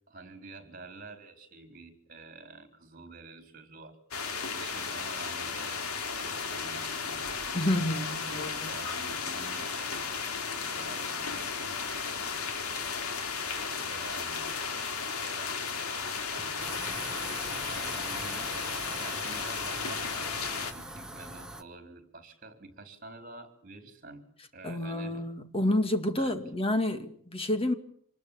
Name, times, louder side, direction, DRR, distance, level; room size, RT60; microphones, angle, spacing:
voice 1, 0.1-4.0 4.5-7.4 8.0-11.8 12.1-12.9 13.4-18.5 19.0-24.3 24.5-25.3 26.2-26.4, right 3 dB, 40° right, 4.4 m, -49 dB
sound 1, 4.1-20.7, left 5 dB, 90° left, 2.8 m, -34 dB
voice 2, 7.5-8.7 24.6-27.7, left 1 dB, 25° left, 2.0 m, -29 dB
sound 2, 16.6-21.6, right 1 dB, 5° right, 1.1 m, -41 dB
26.5 x 20.5 x 8.8 m
head